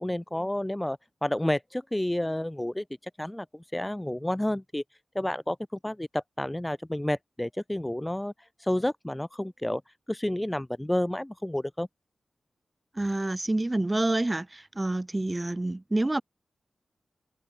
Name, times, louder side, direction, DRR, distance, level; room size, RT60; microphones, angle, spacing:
voice 1, 0.0-2.8 3.2-4.8 5.1-8.3 8.6-9.8 10.1-11.9, left 1 dB, 10° left, 3.4 m, -30 dB
voice 2, 12.9-16.2, right 2 dB, 20° right, 4.9 m, -28 dB
wide cardioid pair, 130°, 0 cm